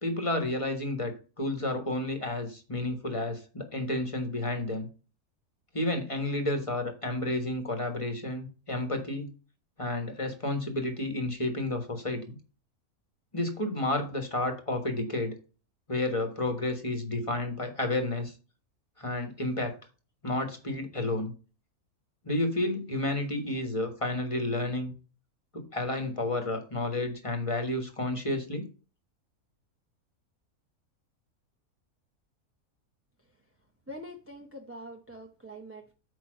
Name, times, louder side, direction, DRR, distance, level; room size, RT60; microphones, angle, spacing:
voice 1, 0.0-4.9 5.7-9.3 9.8-12.4 13.3-15.3 15.9-18.3 19.0-19.7 20.2-21.3 22.2-24.9 25.5-28.7, left 1 dB, 20° left, 1.4 m, -31 dB
voice 2, 33.9-35.9, equal, 15° right, 0.6 m, -44 dB
9.0 x 3.1 x 6.4 m
omnidirectional pair, 1.5 m